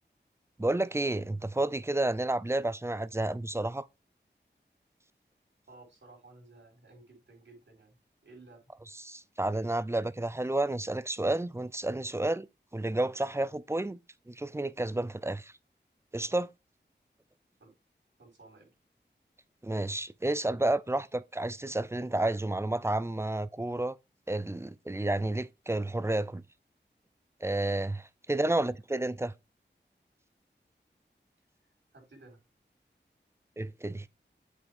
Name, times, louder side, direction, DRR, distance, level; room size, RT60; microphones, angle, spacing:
voice 1, 0.6-3.9 9.0-12.5 12.7-14.0 14.3-15.5 16.1-16.5 19.6-24.0 24.3-26.4 27.4-29.3 33.6-34.1, right 2 dB, 15° right, 0.5 m, -31 dB
voice 2, 5.7-8.0 8.2-8.6 17.6-17.7 18.2-18.7 28.4-28.5 31.9-32.4, right 2 dB, 80° right, 4.9 m, -55 dB
8.2 x 4.9 x 3.6 m
wide cardioid pair, 65°, 19 cm